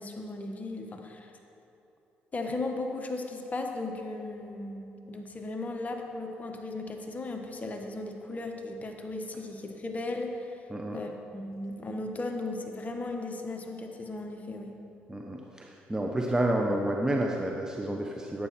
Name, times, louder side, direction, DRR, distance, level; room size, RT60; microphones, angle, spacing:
voice 1, 0.0-1.3 2.3-10.7 10.9-14.8, left 2 dB, 35° left, 3 dB, 1.4 m, -36 dB
voice 2, 15.1-18.5, right 1 dB, 15° right, 1 dB, 0.9 m, -30 dB
11.5 x 8.5 x 4.3 m, 2.8 s
supercardioid pair, 65°, 5 cm